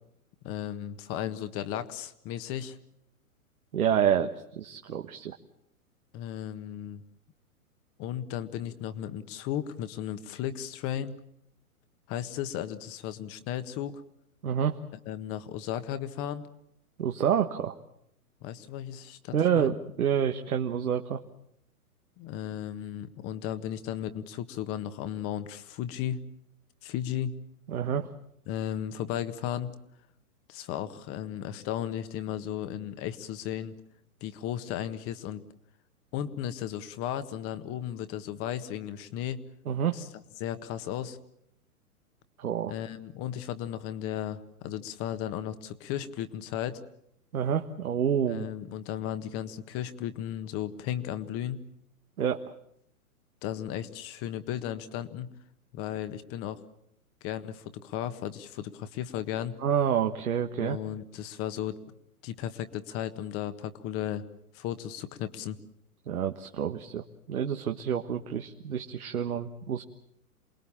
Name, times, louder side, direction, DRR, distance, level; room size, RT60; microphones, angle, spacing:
voice 1, 0.4-2.8 6.1-7.0 8.0-11.1 12.1-14.0 15.1-16.4 18.4-19.7 22.2-26.2 26.8-27.3 28.5-29.7 30.5-33.8 34.2-35.4 36.1-39.4 39.9-40.1 40.4-41.2 42.7-46.8 48.3-51.6 53.4-55.3 55.7-56.6 57.2-59.6 60.6-61.8 62.2-64.3 64.5-65.6, left 10 dB, 30° left, 11 dB, 1.6 m, -35 dB
voice 2, 3.7-5.3 14.4-14.8 17.0-17.7 19.3-21.2 27.7-28.1 39.7-40.0 42.4-42.7 47.3-48.5 52.2-52.4 59.6-60.8 66.1-69.8, right 8 dB, 70° right, 5 dB, 1.5 m, -28 dB
28.0 x 20.5 x 7.4 m, 0.77 s
figure-of-eight pair, 115°, 44 cm